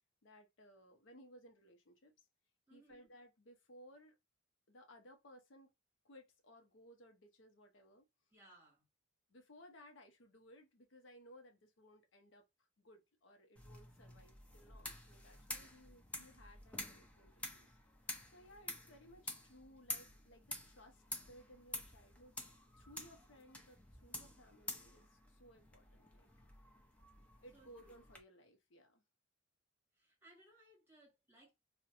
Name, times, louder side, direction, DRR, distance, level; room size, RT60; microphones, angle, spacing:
voice 1, 0.2-2.3 2.7-4.1 4.7-5.7 6.0-8.1 9.3-12.4 12.8-17.8 18.3-22.4 22.8-26.3 27.4-29.0, equal, 65° left, 0.6 m, -61 dB
voice 2, 2.7-3.1 8.3-8.9 15.3-15.7 27.5-27.9 29.9-31.5, right 2 dB, 10° right, 1.2 m, -65 dB
sound 1, 13.6-28.2, left 1 dB, 5° left, 0.4 m, -50 dB
2.4 x 2.1 x 2.7 m
head